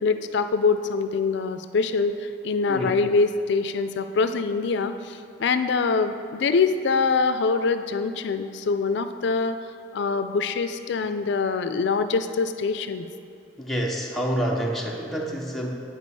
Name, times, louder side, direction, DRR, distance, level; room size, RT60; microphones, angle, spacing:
voice 1, 0.0-9.6 9.9-13.1, left 4 dB, 65° left, 9 dB, 0.4 m, -24 dB
voice 2, 2.7-3.0 13.6-15.7, equal, ahead, -2 dB, 0.7 m, -28 dB
8.2 x 6.3 x 4.1 m, 2.4 s
head